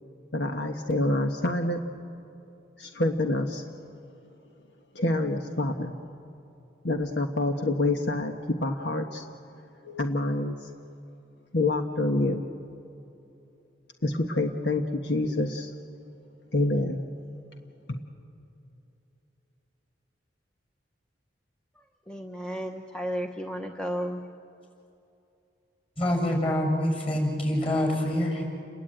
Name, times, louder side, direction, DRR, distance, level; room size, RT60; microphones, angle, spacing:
voice 1, 0.3-1.8 2.8-3.6 4.9-5.9 6.8-9.2 9.8-10.7 11.5-12.4 14.0-15.7 16.5-17.0 17.9-18.0, left 2 dB, 70° left, 4 dB, 1.3 m, -27 dB
voice 2, 21.8-24.2, equal, 5° left, 3 dB, 0.9 m, -33 dB
voice 3, 26.0-28.4, left 1 dB, 30° left, 1 dB, 7.1 m, -26 dB
30.0 x 22.0 x 9.1 m, 2.8 s
head